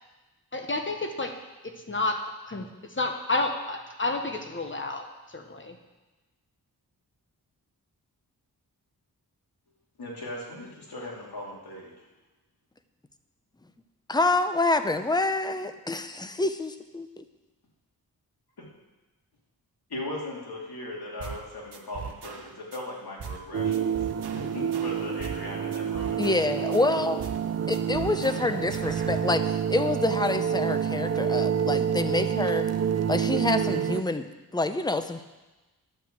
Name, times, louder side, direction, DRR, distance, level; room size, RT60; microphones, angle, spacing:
voice 1, 0.5-1.3 1.6-5.8, left 2 dB, 30° left, 4 dB, 1.2 m, -30 dB
voice 2, 10.0-11.9 18.6-18.7 19.9-23.9 24.3-26.2, left 1 dB, 75° left, -4 dB, 3.0 m, -38 dB
voice 3, 14.1-17.2 26.2-27.2 27.7-32.7 33.1-34.3 34.5-35.2, left 2 dB, 10° left, 9 dB, 0.6 m, -27 dB
sound 1, 21.2-21.4 21.7-22.8 23.2-23.4 23.7-25.4 25.7-26.8 27.2-27.5 27.7-29.2, right 6 dB, 75° right, 1.0 m, -40 dB
sound 2, 23.5-34.0, right 8 dB, 40° right, 0.5 m, -28 dB
11.0 x 5.8 x 7.7 m, 1.1 s
wide cardioid pair, 100°, 39 cm